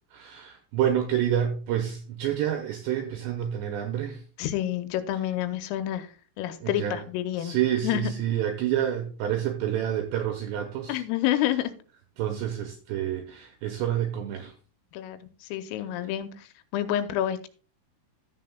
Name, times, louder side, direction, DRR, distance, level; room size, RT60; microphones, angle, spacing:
voice 1, 0.1-4.2 6.6-7.0 7.4-11.0 12.2-14.5, right 10 dB, 85° right, 2.5 m, -28 dB
voice 2, 4.4-6.1 6.4-8.0 10.9-11.7 14.9-16.5 16.7-17.5, left 12 dB, 90° left, 3.3 m, -29 dB
13.5 x 7.7 x 2.2 m
omnidirectional pair, 5.8 m